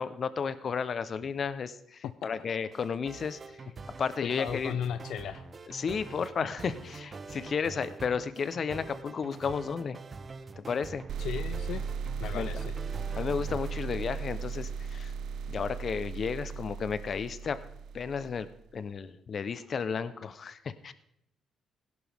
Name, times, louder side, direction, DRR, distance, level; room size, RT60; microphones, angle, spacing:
voice 1, 0.0-3.6 4.0-4.7 5.7-10.0 10.6-11.0 12.3-12.5 13.1-15.1 15.5-17.6 17.9-18.5 18.7-20.9, left 6 dB, 50° left, 13 dB, 0.9 m, -33 dB
sound 1, 2.7-14.0, right 4 dB, 40° right, 1.1 m, -45 dB
voice 2, 4.2-5.5 11.2-11.8 12.2-12.7, left 9 dB, 75° left, 12 dB, 0.4 m, -36 dB
sound 2, 11.1-18.6, right 6 dB, 70° right, 0.5 m, -37 dB
17.0 x 11.0 x 3.6 m, 0.77 s
cardioid pair, 90°, 0 cm